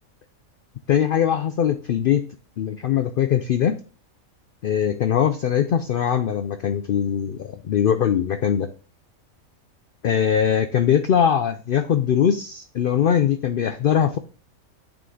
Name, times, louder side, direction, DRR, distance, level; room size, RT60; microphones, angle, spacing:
voice 1, 0.9-2.3 2.6-3.8 4.6-8.7 10.0-14.2, left 9 dB, 90° left, 9 dB, 0.4 m, -21 dB
8.8 x 3.8 x 3.8 m, 0.39 s
omnidirectional pair, 1.5 m